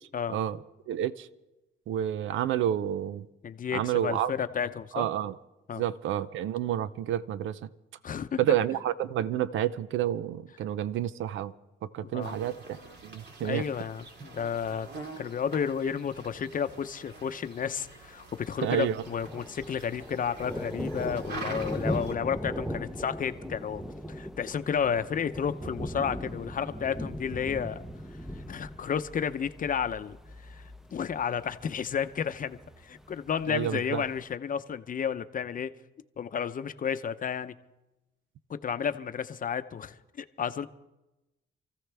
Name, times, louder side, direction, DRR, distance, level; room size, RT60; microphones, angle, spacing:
voice 1, 0.9-1.3 1.9-3.2 3.7-4.3 4.9-5.4 5.7-7.7 8.4-11.5 11.8-12.8 13.0-13.6 18.6-19.0 33.5-34.0, right 11 dB, 75° right, 16 dB, 0.6 m, -29 dB
voice 2, 3.4-5.1 5.7-5.8 8.0-8.4 12.1-12.4 13.4-14.9 15.2-23.8 24.1-27.9 28.3-30.2 30.4-30.6 30.9-32.6 32.8-35.7 36.2-37.5 38.5-40.7, left 7 dB, 45° left, 11 dB, 0.7 m, -32 dB
sound 1, 12.2-22.1, right 3 dB, 60° right, 2.3 m, -46 dB
Thunder, 18.8-34.4, equal, ahead, 0.7 m, -39 dB
27.5 x 15.0 x 3.4 m, 1.0 s
cardioid pair, 90°, 20 cm